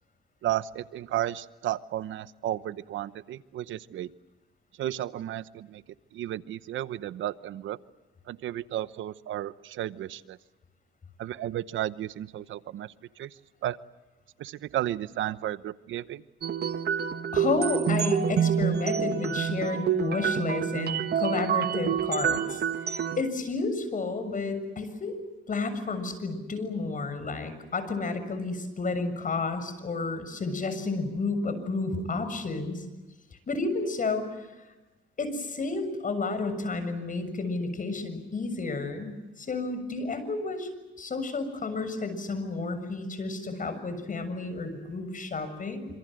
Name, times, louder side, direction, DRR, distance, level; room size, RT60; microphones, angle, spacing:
voice 1, 0.4-4.1 4.8-5.8 6.1-7.8 8.3-10.4 11.2-13.3 13.6-13.8 14.4-16.2, right 13 dB, 80° right, 15 dB, 1.0 m, -33 dB
sound 1, 16.4-23.2, right 8 dB, 55° right, 1.5 m, -27 dB
voice 2, 17.3-22.6 23.2-25.2 25.5-32.8 33.5-34.3 35.2-40.7 41.0-45.9, left 3 dB, 40° left, 10 dB, 6.9 m, -31 dB
27.0 x 27.0 x 7.8 m, 1.1 s
cardioid pair, 90°, 20 cm